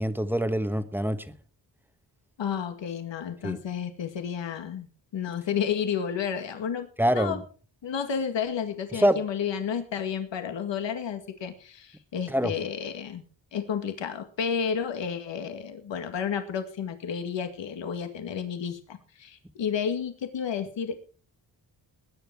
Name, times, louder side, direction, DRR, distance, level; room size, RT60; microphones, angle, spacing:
voice 1, 0.0-1.3 3.4-3.6 7.0-7.4 8.9-9.2 12.3-12.5, equal, 5° right, 1.1 m, -25 dB
voice 2, 2.4-4.9 5.1-7.4 7.8-13.2 13.5-21.0, left 7 dB, 85° left, 2.1 m, -31 dB
20.0 x 10.0 x 4.6 m
wide cardioid pair, 145°, 43 cm